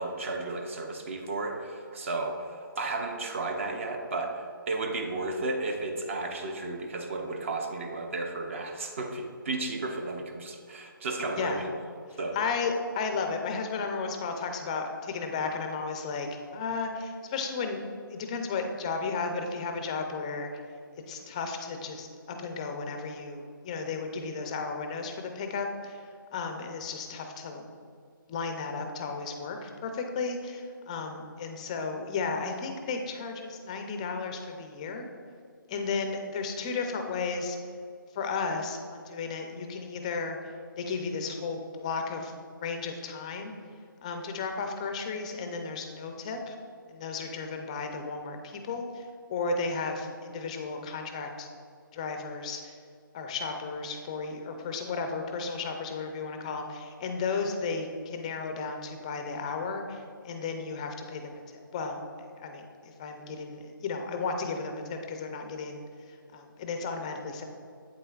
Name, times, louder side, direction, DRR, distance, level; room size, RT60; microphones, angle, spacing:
voice 1, 0.0-11.7 12.2-12.4, right 2 dB, 35° right, 4 dB, 0.6 m, -33 dB
voice 2, 12.1-16.3 16.5-17.8 18.1-20.5 21.1-27.7 28.3-35.1 35.7-37.6 38.1-40.4 40.8-42.3 42.6-43.5 44.0-46.6 46.9-51.5 51.9-52.7 53.1-61.4 61.7-62.0 62.4-67.5, left 4 dB, 20° left, 4 dB, 0.4 m, -34 dB
8.2 x 7.7 x 2.4 m, 2.3 s
hypercardioid pair, 160°, 12 cm